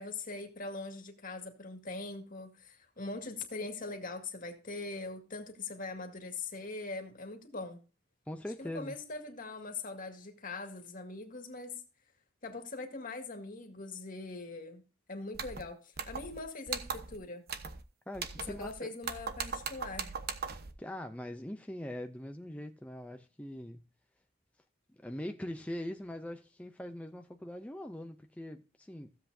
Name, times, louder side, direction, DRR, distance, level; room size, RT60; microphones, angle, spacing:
voice 1, 0.0-7.8 8.6-11.8 12.4-14.8 15.1-17.4 18.5-20.1, left 3 dB, 50° left, 2.0 m, -42 dB
voice 2, 8.3-9.0 18.1-18.9 20.8-23.8 24.9-29.2, left 1 dB, 5° left, 0.6 m, -42 dB
sound 1, 15.3-15.6 16.0-16.4 16.7-17.2 17.5-17.8 18.1-18.7 19.0-20.7, right 6 dB, 55° right, 1.1 m, -39 dB
15.5 x 7.9 x 2.7 m
head